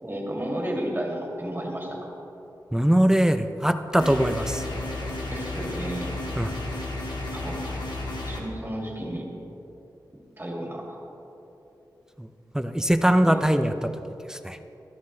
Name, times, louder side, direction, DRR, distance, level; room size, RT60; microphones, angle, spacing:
voice 1, 0.0-2.1 5.3-6.1 7.3-7.6 8.2-9.3 10.4-11.0 13.3-13.8, right 1 dB, 30° right, -2 dB, 2.5 m, -32 dB
voice 2, 2.7-4.6 6.4-6.5 12.2-12.3 12.5-13.9 14.3-14.6, equal, 10° right, 9 dB, 0.5 m, -22 dB
sound 1, 4.0-8.4, left 2 dB, 85° left, 1.7 m, -32 dB
13.5 x 11.0 x 3.2 m, 3.0 s
cardioid pair, 60°, 8 cm